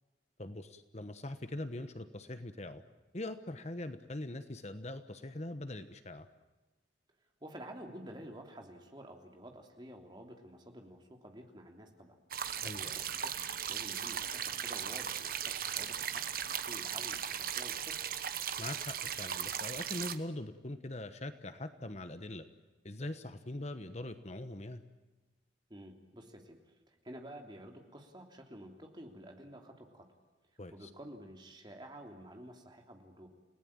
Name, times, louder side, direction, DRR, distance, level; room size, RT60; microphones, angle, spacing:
voice 1, 0.4-2.8 3.1-6.3 12.6-13.0 18.6-22.5 22.8-24.8 30.6-30.9, left 1 dB, 35° left, 10 dB, 1.1 m, -42 dB
voice 2, 7.4-12.2 12.9-13.3 13.7-18.1 25.7-30.1 30.7-33.3, right 1 dB, 25° right, 3 dB, 3.2 m, -50 dB
sound 1, 12.3-20.2, right 9 dB, 50° right, 1.3 m, -37 dB
29.5 x 18.0 x 8.9 m, 1.2 s
head